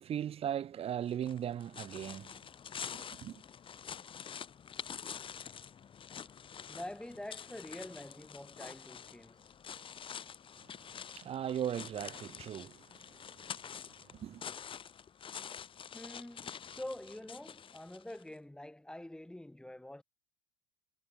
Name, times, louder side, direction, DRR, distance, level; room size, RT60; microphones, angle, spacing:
voice 1, 0.0-2.4 2.8-3.4 10.7-13.7 14.1-14.5, right 10 dB, 30° right, 1.8 m, -39 dB
sound 1, 1.1-18.3, left 7 dB, 30° left, 3.2 m, -47 dB
voice 2, 6.7-9.5 15.9-20.0, left 1 dB, 5° left, 7.7 m, -46 dB
figure-of-eight pair, 75°, 19 cm